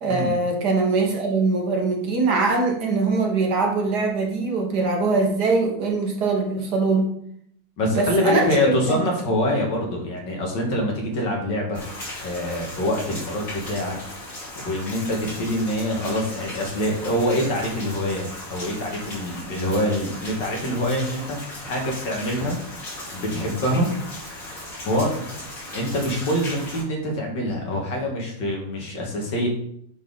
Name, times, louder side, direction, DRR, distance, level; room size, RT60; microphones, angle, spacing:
voice 1, 0.0-7.1 7.9-9.0, right 3 dB, 60° right, 1 dB, 1.8 m, -22 dB
voice 2, 7.8-11.8 12.2-14.0 14.6-22.6 23.1-23.9 24.9-25.3 25.7-29.5, left 1 dB, 75° left, -1 dB, 2.3 m, -25 dB
Rain, 11.7-26.8, left 1 dB, 45° left, 3.1 m, -37 dB
10.5 x 4.1 x 3.6 m, 0.68 s
omnidirectional pair, 2.0 m